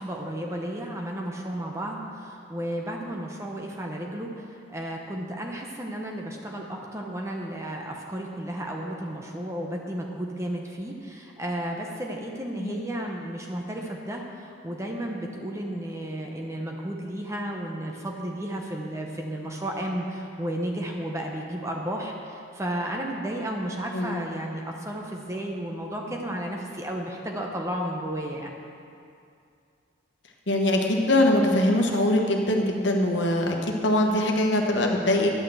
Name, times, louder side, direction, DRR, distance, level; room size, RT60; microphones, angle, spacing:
voice 1, 0.0-28.5, right 1 dB, 15° right, 0 dB, 0.9 m, -33 dB
voice 2, 30.5-35.3, left 1 dB, 60° left, 1 dB, 1.2 m, -22 dB
10.5 x 6.5 x 7.8 m, 2.5 s
head